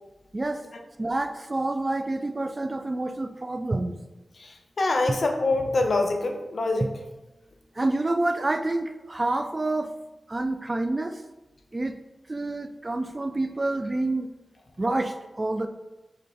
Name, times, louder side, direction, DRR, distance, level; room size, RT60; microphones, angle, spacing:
voice 1, 0.3-0.6 1.0-3.9 7.8-9.9 10.3-11.2 11.7-12.0 12.3-14.3 14.8-15.7, right 2 dB, 35° right, 8 dB, 0.3 m, -28 dB
voice 2, 4.4-6.9, left 2 dB, 60° left, 3 dB, 0.6 m, -25 dB
3.9 x 3.2 x 3.9 m, 1.0 s
cardioid pair, 60°, 0 cm